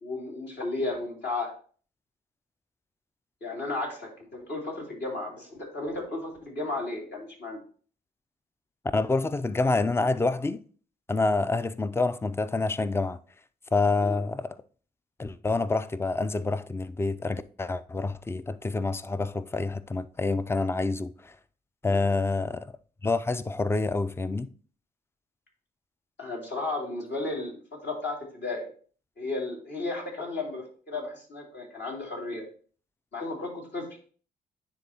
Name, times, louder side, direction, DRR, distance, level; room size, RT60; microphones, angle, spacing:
voice 1, 0.0-1.5 3.4-7.6 14.0-14.2 21.9-22.2 26.2-27.5 27.8-28.7 29.2-32.4 33.1-33.8, left 2 dB, 60° left, 2.6 m, -34 dB
voice 2, 8.9-10.6 11.1-13.2 13.7-14.6 15.2-21.3 21.8-22.7 23.0-24.5, left 3 dB, 10° left, 0.4 m, -27 dB
9.8 x 3.6 x 2.9 m
hypercardioid pair, 40°, 20 cm